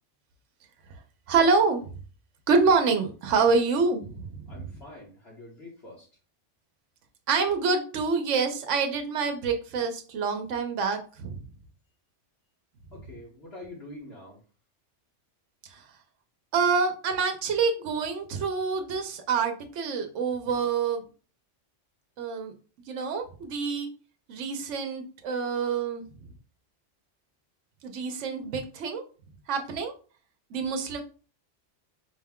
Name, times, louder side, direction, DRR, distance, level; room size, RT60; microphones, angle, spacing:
voice 1, 1.3-1.9 2.5-4.3 7.3-11.4 15.7-15.8 16.5-21.0 22.2-22.5 22.9-23.9 24.3-26.0 27.8-29.0 29.5-29.9 30.5-31.0, right 4 dB, 85° right, 5 dB, 1.0 m, -26 dB
voice 2, 4.5-6.1 12.9-14.4, left 2 dB, 60° left, -5 dB, 1.4 m, -45 dB
5.0 x 2.2 x 3.5 m, 0.36 s
omnidirectional pair, 1.2 m